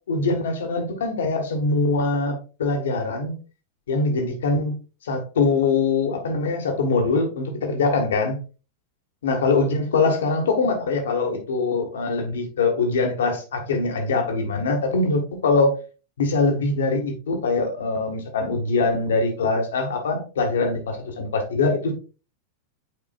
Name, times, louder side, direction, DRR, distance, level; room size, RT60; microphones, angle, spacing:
voice 1, 0.1-3.3 3.9-4.8 5.0-8.4 9.2-15.8 16.2-21.9, left 3 dB, 65° left, 1.7 m, -23 dB
8.2 x 4.8 x 2.5 m
figure-of-eight pair, 90°, 0 cm